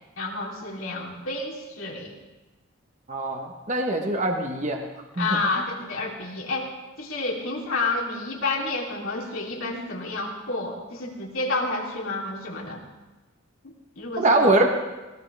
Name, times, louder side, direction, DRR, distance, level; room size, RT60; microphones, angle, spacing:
voice 1, 0.2-2.2 5.2-6.7 7.0-12.8 13.6-14.5, left 3 dB, 80° left, -3 dB, 3.4 m, -30 dB
voice 2, 3.1-4.8 5.2-5.4 14.2-14.7, right 2 dB, 35° right, 3 dB, 1.4 m, -22 dB
20.0 x 18.5 x 3.5 m, 1.2 s
head